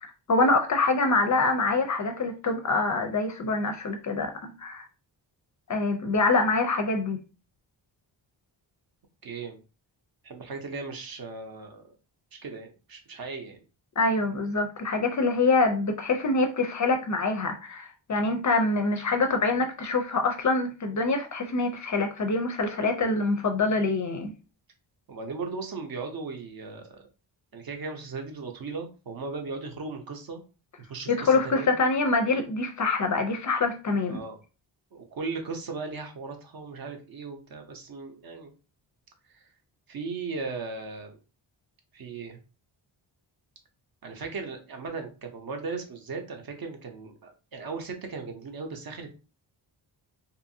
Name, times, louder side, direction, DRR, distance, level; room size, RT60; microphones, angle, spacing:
voice 1, 0.0-4.9 5.7-7.2 14.0-24.3 31.1-34.2, left 3 dB, 40° left, 0.4 m, -25 dB
voice 2, 9.2-9.6 10.2-11.8 12.4-13.6 25.1-27.0 27.5-30.4 30.8-31.7 34.0-34.4 34.9-38.5 39.3-39.5 39.9-41.2 41.9-42.4 44.0-49.1, right 4 dB, 50° right, 0.7 m, -37 dB
2.7 x 2.5 x 2.6 m
wide cardioid pair, 130°, 46 cm